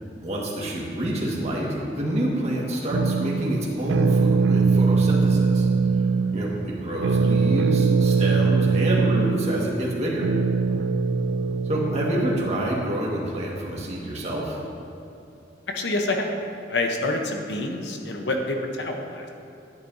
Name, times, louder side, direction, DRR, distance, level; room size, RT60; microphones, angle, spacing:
voice 1, 0.2-1.7 1.9-5.7 6.3-10.3 11.6-14.6, right 1 dB, 35° right, -4 dB, 1.7 m, -27 dB
sound 1, 2.9-12.8, right 4 dB, 85° right, 0.4 m, -22 dB
voice 2, 15.7-16.3 16.7-19.3, left 2 dB, 70° left, 3 dB, 0.9 m, -27 dB
12.0 x 10.0 x 2.7 m, 2.8 s
head